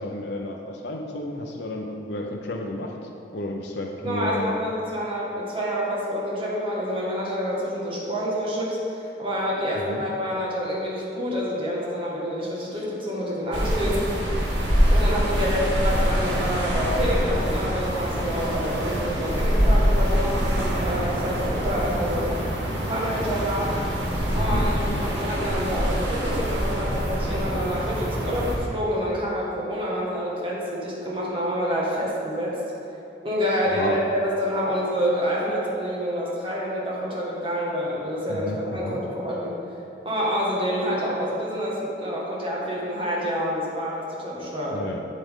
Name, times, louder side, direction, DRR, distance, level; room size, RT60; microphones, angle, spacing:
voice 1, 0.0-4.6 9.7-10.0 15.5-15.7 16.0-16.1 24.3-25.0 33.7-34.0 38.3-39.0 44.7-45.0, left 1 dB, 65° left, 0 dB, 0.7 m, -32 dB
voice 2, 4.0-14.0 14.9-22.4 22.9-23.7 24.3-32.5 33.2-39.6 40.0-44.8, equal, 30° right, -5 dB, 1.7 m, -27 dB
sound 1, 13.5-28.6, equal, 80° right, 1.6 m, -24 dB
8.6 x 8.3 x 3.7 m, 2.8 s
head